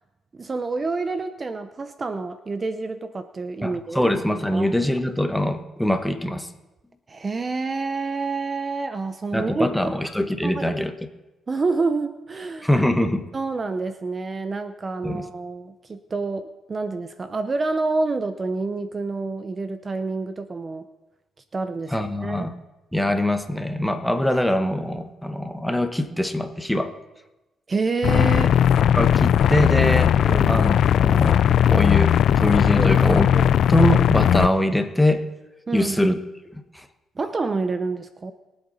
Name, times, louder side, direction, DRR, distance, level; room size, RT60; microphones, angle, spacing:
voice 1, 0.4-4.1 4.5-4.7 7.1-9.9 10.4-10.7 11.5-12.8 13.3-20.8 21.5-22.5 27.7-28.5 30.3-30.6 32.8-33.0 33.3-33.5 35.7-36.1 37.2-38.3, right 3 dB, 35° right, 10 dB, 0.7 m, -28 dB
voice 2, 3.6-6.5 9.3-10.9 12.6-13.3 15.0-15.3 21.9-22.5 22.9-26.9 28.9-30.2 30.5-31.4 31.7-33.3 33.7-35.2 35.7-36.2 36.5-36.8, left 1 dB, 5° left, 7 dB, 1.2 m, -23 dB
sound 1, 28.0-34.5, left 9 dB, 65° left, 0.3 m, -18 dB
23.0 x 7.9 x 4.2 m, 1.1 s
cardioid pair, 90°, 0 cm